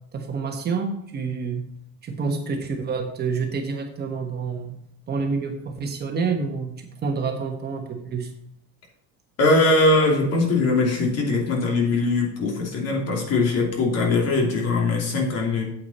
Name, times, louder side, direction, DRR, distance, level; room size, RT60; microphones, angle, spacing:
voice 1, 0.1-1.7 2.0-4.8 5.1-8.3, right 5 dB, 30° right, 3 dB, 1.2 m, -28 dB
voice 2, 9.4-15.6, left 3 dB, 50° left, 1 dB, 2.8 m, -21 dB
8.6 x 8.4 x 4.2 m, 0.75 s
cardioid pair, 175°, 32 cm